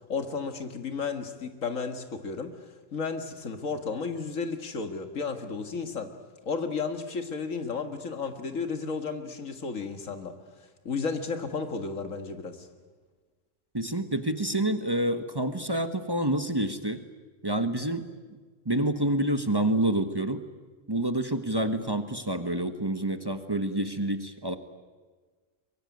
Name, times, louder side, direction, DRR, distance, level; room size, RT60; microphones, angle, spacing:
voice 1, 0.1-2.5 2.9-6.1 6.5-10.4 10.8-12.7, left 5 dB, 90° left, 7 dB, 2.2 m, -33 dB
voice 2, 13.7-17.0 17.4-18.4 18.6-20.4 20.9-24.6, right 1 dB, 20° right, 9 dB, 1.2 m, -28 dB
23.5 x 22.5 x 9.4 m, 1.4 s
omnidirectional pair, 1.3 m